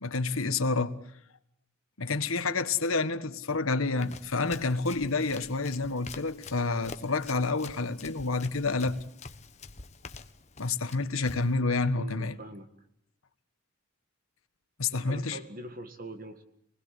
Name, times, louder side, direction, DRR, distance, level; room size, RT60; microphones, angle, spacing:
voice 1, 0.0-1.0 2.0-9.0 10.6-12.4 14.8-15.4, left 3 dB, 80° left, 1.5 m, -29 dB
Run, 4.0-11.6, left 4 dB, 30° left, 1.3 m, -47 dB
voice 2, 12.0-12.7 14.9-16.4, right 1 dB, 40° right, 1.9 m, -43 dB
27.0 x 20.5 x 8.3 m
head